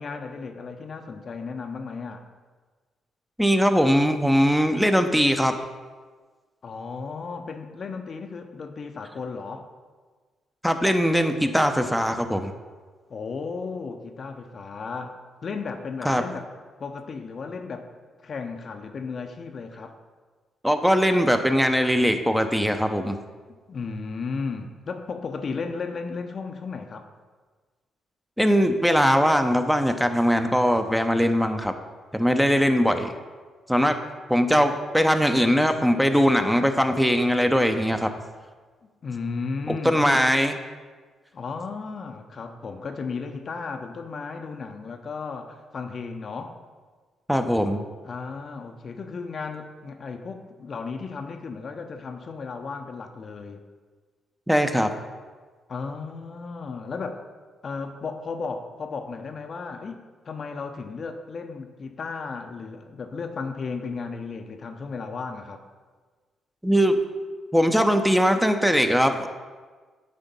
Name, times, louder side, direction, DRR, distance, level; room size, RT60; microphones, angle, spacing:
voice 1, 0.0-2.2 6.6-9.7 13.1-15.2 15.4-16.5 16.8-17.9 18.2-20.0 23.5-27.1 38.8-40.2 41.3-46.6 48.0-53.6 55.7-57.2 57.6-65.6, left 4 dB, 50° left, 6 dB, 0.6 m, -34 dB
voice 2, 3.4-5.6 10.6-12.5 16.0-16.2 20.6-23.2 28.4-31.7 32.1-33.1 33.7-34.0 34.3-38.1 39.7-40.5 47.3-47.8 54.5-54.9 66.6-67.0 67.5-69.3, equal, 5° right, 7 dB, 0.7 m, -21 dB
9.5 x 3.6 x 5.4 m, 1.4 s
hypercardioid pair, 40°, 0 cm